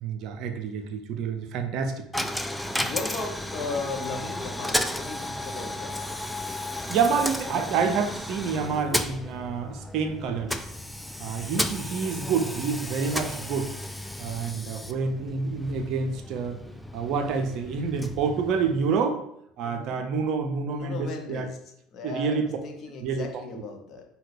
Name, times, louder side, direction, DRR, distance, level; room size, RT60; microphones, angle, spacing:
voice 1, 0.0-2.3 6.9-10.7 11.2-13.7 14.2-16.6 16.9-19.2 19.6-21.5 22.0-22.5 23.0-23.4, right 5 dB, 50° right, 7 dB, 0.5 m, -28 dB
Coin (dropping), 2.1-19.1, left 1 dB, 5° left, 0.3 m, -34 dB
voice 2, 2.8-6.2 19.6-20.0 20.7-21.6 21.9-24.0, left 3 dB, 40° left, 3 dB, 0.9 m, -36 dB
5.4 x 2.3 x 3.4 m, 0.74 s
figure-of-eight pair, 60°, 0 cm